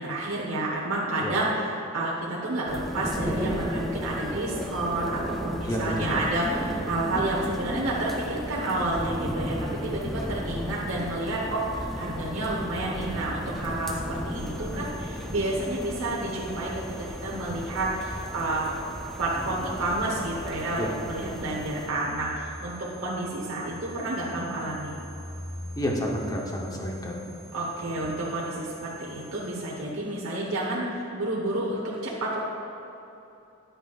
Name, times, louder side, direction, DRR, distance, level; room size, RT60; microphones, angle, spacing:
voice 1, 0.0-1.7 1.9-16.7 17.0-18.7 19.2-22.7 23.0-24.9 27.5-32.4, right 2 dB, 70° right, -5 dB, 1.1 m, -30 dB
sound 1, 2.7-21.9, equal, ahead, 0.4 m, -34 dB
voice 2, 5.6-6.2 20.8-20.9 21.2-21.4 25.8-27.3 28.0-28.1, equal, 20° left, -1 dB, 0.9 m, -30 dB
sound 2, 14.3-29.8, equal, 80° left, 1.7 m, -45 dB
10.0 x 8.0 x 2.4 m, 2.9 s
head